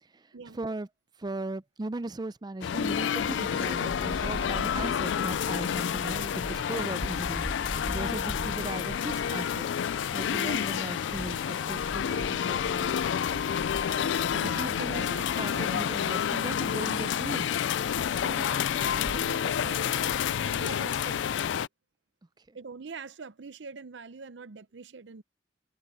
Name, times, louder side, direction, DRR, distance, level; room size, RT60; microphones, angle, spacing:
voice 1, 0.1-0.9 1.2-7.4 7.8-9.6 10.1-13.2 13.5-13.6 14.3-17.5 22.5-22.6, right 2 dB, 25° right, 0.5 m, -38 dB
sound 1, 2.6-21.7, left 8 dB, 85° left, 0.4 m, -29 dB
sound 2, 2.7-21.4, left 1 dB, 30° left, 2.1 m, -42 dB
voice 2, 14.3-15.2 15.5-16.0 18.2-21.2 22.5-25.2, right 4 dB, 80° right, 0.6 m, -44 dB
head